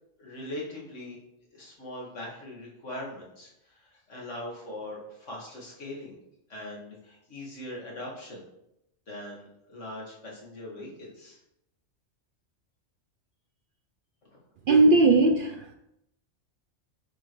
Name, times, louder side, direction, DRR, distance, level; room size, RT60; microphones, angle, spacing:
voice 1, 0.2-1.2 1.5-6.2 6.5-8.4 9.1-11.4, left 1 dB, 70° left, -3 dB, 2.2 m, -41 dB
voice 2, 14.7-15.7, right 2 dB, 60° right, 6 dB, 0.6 m, -19 dB
7.9 x 6.1 x 3.1 m, 0.83 s
omnidirectional pair, 1.3 m